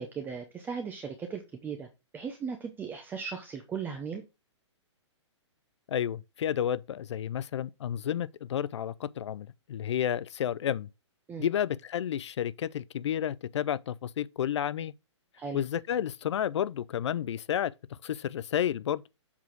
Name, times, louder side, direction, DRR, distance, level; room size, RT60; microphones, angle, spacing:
voice 1, 0.0-1.9 2.1-4.2 11.3-11.5 15.4-15.6, right 6 dB, 10° right, 0.8 m, -37 dB
voice 2, 5.9-10.9 11.4-14.9 15.5-17.7 18.0-19.0, left 10 dB, 70° left, 0.5 m, -31 dB
7.2 x 4.2 x 4.6 m
hypercardioid pair, 140°, 15 cm